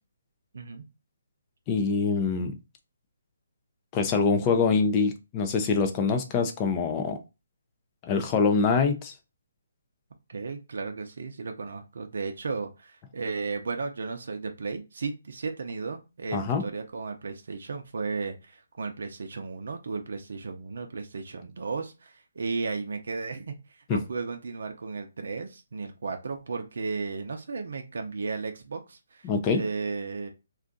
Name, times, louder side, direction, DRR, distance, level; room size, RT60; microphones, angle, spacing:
voice 1, 0.5-0.8 10.3-23.5 23.9-30.3, right 4 dB, 70° right, 4 dB, 0.6 m, -34 dB
voice 2, 1.7-2.5 3.9-7.2 8.0-9.1 16.3-16.6 23.9-24.0 29.2-29.6, left 5 dB, 20° left, 6 dB, 0.5 m, -24 dB
2.5 x 2.3 x 3.8 m, 0.27 s
hypercardioid pair, 160°, 0 cm